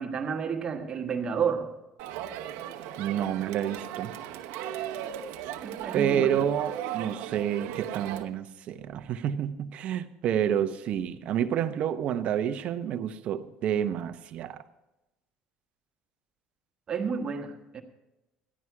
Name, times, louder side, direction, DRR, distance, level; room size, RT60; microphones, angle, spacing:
voice 1, 0.0-1.8 5.6-6.4 16.9-17.8, right 6 dB, 35° right, 1.4 m, -31 dB
Crowd, 2.0-8.2, right 11 dB, 85° right, 1.0 m, -37 dB
voice 2, 3.0-4.1 5.9-14.6, right 9 dB, 55° right, 0.9 m, -29 dB
14.0 x 11.0 x 4.7 m
cardioid pair, 115°, 3 cm